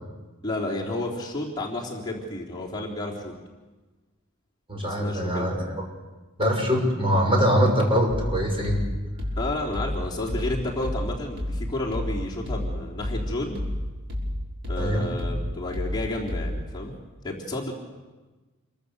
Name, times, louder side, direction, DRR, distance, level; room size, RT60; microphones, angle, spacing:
voice 1, 0.4-3.3 4.8-5.5 9.4-13.6 14.7-16.9 17.2-17.7, left 2 dB, 20° left, -4 dB, 3.6 m, -31 dB
voice 2, 4.7-5.7 6.4-8.9 14.8-15.1, equal, 25° right, 1 dB, 6.3 m, -23 dB
sound 1, 8.1-16.8, left 1 dB, 60° right, 5.9 m, -31 dB
28.5 x 23.5 x 6.9 m, 1.2 s
head